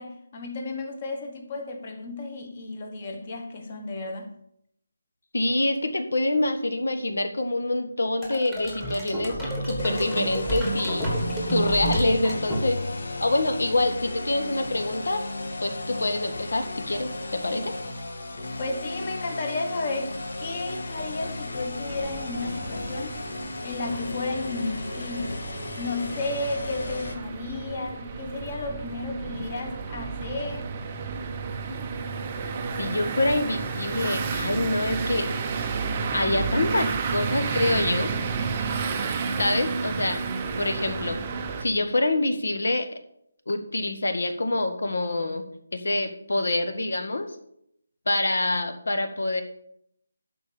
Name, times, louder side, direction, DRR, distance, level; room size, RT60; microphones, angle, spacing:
voice 1, 0.0-4.3 18.6-23.2 23.6-25.4 25.8-30.7, left 3 dB, 25° left, 1.2 m, -33 dB
voice 2, 5.3-9.4 9.6-11.1 11.5-12.8 13.2-15.2 15.6-17.7 31.7-31.8 32.8-35.3 35.6-35.7 36.1-38.1 39.1-40.2 40.6-41.2 41.6-42.9 43.5-45.5 45.7-47.4 48.1-49.4, left 2 dB, 75° left, 1.7 m, -26 dB
sound 1, 8.2-13.0, right 1 dB, 5° left, 1.4 m, -30 dB
sound 2, 9.8-27.2, left 2 dB, 55° left, 1.5 m, -35 dB
sound 3, 21.9-41.7, right 5 dB, 15° right, 0.6 m, -31 dB
11.5 x 4.7 x 6.8 m
hypercardioid pair, 180°, 0 cm